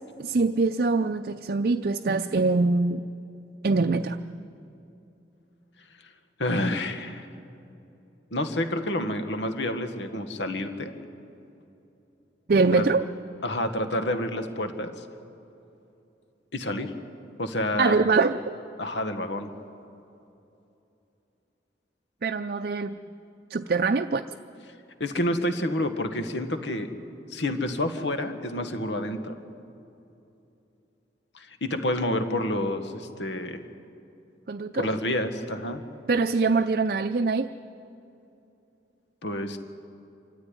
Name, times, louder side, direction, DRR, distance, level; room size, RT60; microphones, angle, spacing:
voice 1, 0.2-3.0 3.6-4.2 12.5-13.1 17.8-18.5 22.2-23.0 23.5-24.2 34.5-34.9 36.1-37.5, right 3 dB, 55° right, 7 dB, 0.5 m, -23 dB
voice 2, 6.4-7.3 8.3-10.9 12.7-12.8 13.4-14.9 16.5-16.9 17.4-18.0 18.8-19.5 25.0-26.9 27.3-29.4 31.3-33.6 34.7-35.8 39.2-39.6, left 1 dB, 80° left, 8 dB, 1.6 m, -28 dB
26.0 x 13.5 x 9.8 m, 2.8 s
head